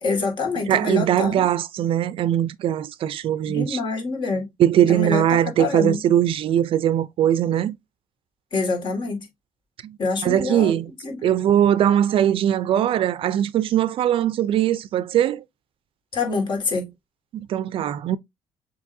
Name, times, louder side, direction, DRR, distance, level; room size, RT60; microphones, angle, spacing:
voice 1, 0.0-1.4 3.5-4.5 4.9-6.0 8.5-9.3 10.0-10.7 11.0-11.4 16.1-16.9, left 4 dB, 50° left, 1.8 m, -26 dB
voice 2, 0.7-3.8 4.6-7.7 9.8-10.0 10.2-10.9 11.2-15.4 17.3-18.2, right 10 dB, 60° right, 0.3 m, -21 dB
7.2 x 2.9 x 2.6 m
cardioid pair, 145°, 11 cm